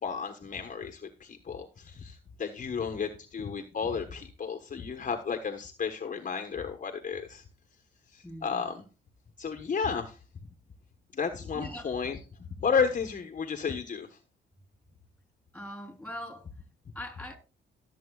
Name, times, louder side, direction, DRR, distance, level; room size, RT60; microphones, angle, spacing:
voice 1, 0.0-7.4 8.1-8.8 9.4-10.2 11.1-14.1, left 6 dB, 40° left, 1.2 m, -33 dB
voice 2, 8.2-8.6 11.5-11.9 15.5-16.5 16.9-17.4, left 1 dB, 5° left, 3.7 m, -41 dB
17.0 x 7.5 x 2.4 m
cardioid pair, 90°, 20 cm